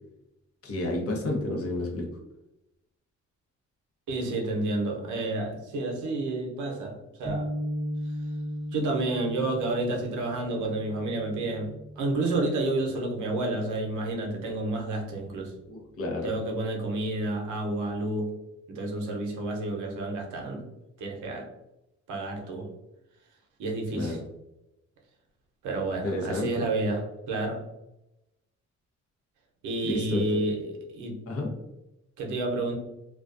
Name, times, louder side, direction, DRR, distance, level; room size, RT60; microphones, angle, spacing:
voice 1, 0.6-2.0 15.7-16.3 23.9-24.2 26.0-26.6 29.8-30.4 31.3-31.5, left 2 dB, 50° left, 0 dB, 0.8 m, -30 dB
voice 2, 4.1-7.5 8.7-15.5 16.2-18.3 18.7-20.7 21.0-21.5 22.1-22.7 23.6-24.2 25.6-27.6 29.6-31.2 32.2-32.7, right 2 dB, 80° right, 1 dB, 0.7 m, -30 dB
sound 1, 7.2-13.7, equal, 30° right, 0.7 m, -37 dB
2.3 x 2.3 x 2.4 m, 0.91 s
cardioid pair, 90°, 30 cm